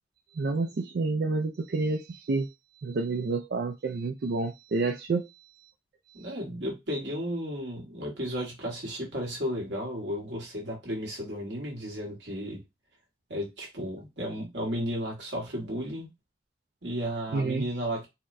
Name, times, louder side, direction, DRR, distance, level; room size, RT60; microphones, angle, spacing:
voice 1, 0.3-2.5 2.8-5.5 6.1-6.3 17.3-17.7, right 3 dB, 60° right, 0.4 m, -29 dB
voice 2, 6.1-12.6 13.3-16.1 16.8-18.1, equal, 80° right, 1.4 m, -34 dB
4.1 x 2.1 x 2.5 m
head